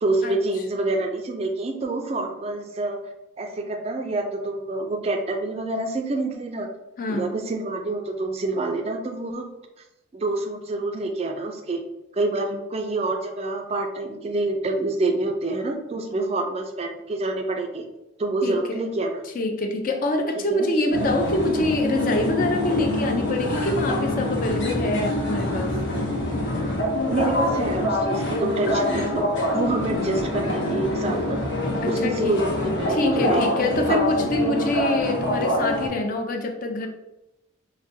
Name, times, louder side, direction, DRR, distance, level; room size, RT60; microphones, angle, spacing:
voice 1, 0.0-3.0 3.4-6.7 7.1-9.5 10.1-11.8 12.1-17.8 18.2-19.1 20.4-20.7 27.1-29.3 29.5-31.4 31.8-33.4 33.9-34.0, right 2 dB, 30° right, 4 dB, 0.3 m, -27 dB
voice 2, 7.0-7.3 18.4-18.9 19.3-25.7 31.8-32.4 32.9-36.9, left 2 dB, 45° left, 3 dB, 0.4 m, -25 dB
sound 1, 20.9-35.9, left 1 dB, 65° left, 0.8 m, -25 dB
4.7 x 2.2 x 2.6 m, 0.93 s
head